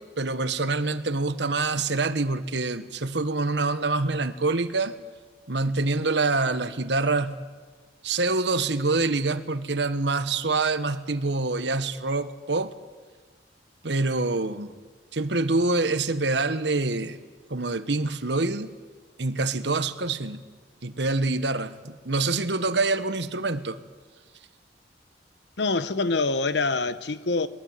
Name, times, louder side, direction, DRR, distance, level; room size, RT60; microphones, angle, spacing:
voice 1, 0.0-4.9 5.5-7.4 8.0-12.7 13.8-14.8 15.1-17.2 17.5-18.7 19.2-20.4 20.8-23.8, right 3 dB, 80° right, 1.3 m, -26 dB
voice 2, 25.6-27.5, left 3 dB, 75° left, 1.0 m, -25 dB
22.0 x 21.0 x 9.1 m
head